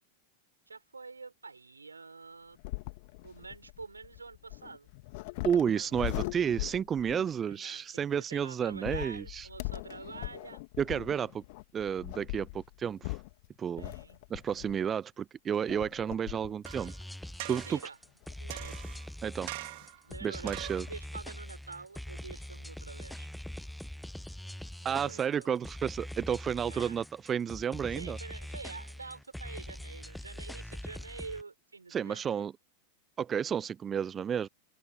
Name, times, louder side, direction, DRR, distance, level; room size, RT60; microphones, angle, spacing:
voice 1, 0.7-2.6 3.2-4.9 5.5-6.5 7.4-10.6 13.8-14.2 17.4-18.0 18.4-19.0 20.0-23.3 24.8-25.6 26.7-26.9 27.9-32.3, right 4 dB, 80° right, 5.8 m, -47 dB
sound 1, 2.6-7.4 8.7-15.0 15.7-16.6 17.0-17.1 18.2-18.9 19.8-19.9 20.1-20.2 20.5-20.9, left 25 dB, 50° left, 2.1 m, -41 dB
voice 2, 5.4-9.5 10.8-11.4 11.7-13.2 13.6-13.9 14.3-16.9 17.5-17.8 19.2-19.5 20.2-20.9 24.8-28.2 31.9-32.5 33.2-34.5, right 8 dB, 25° right, 0.8 m, -31 dB
sound 2, 16.6-31.4, left 1 dB, ahead, 1.0 m, -43 dB
sound 3, 16.7-17.0 17.4-17.9 18.5-19.1 19.5-20.0 20.5-20.9 21.5-21.6, right 22 dB, 50° right, 4.0 m, -43 dB
open air
figure-of-eight pair, 90°, 0 cm